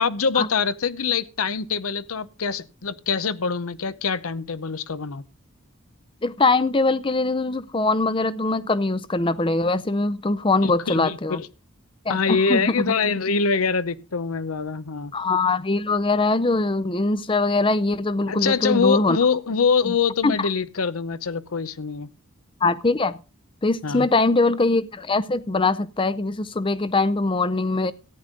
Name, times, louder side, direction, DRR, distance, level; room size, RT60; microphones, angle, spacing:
voice 1, 0.0-5.2 10.6-11.5 12.1-15.1 18.3-22.1 23.8-24.1, left 5 dB, 85° left, 0.8 m, -24 dB
voice 2, 6.2-11.4 12.1-12.9 15.1-19.2 19.9-20.0 20.2-20.5 22.6-23.2 23.6-27.9, left 3 dB, 25° left, 0.5 m, -22 dB
14.0 x 9.9 x 3.8 m
head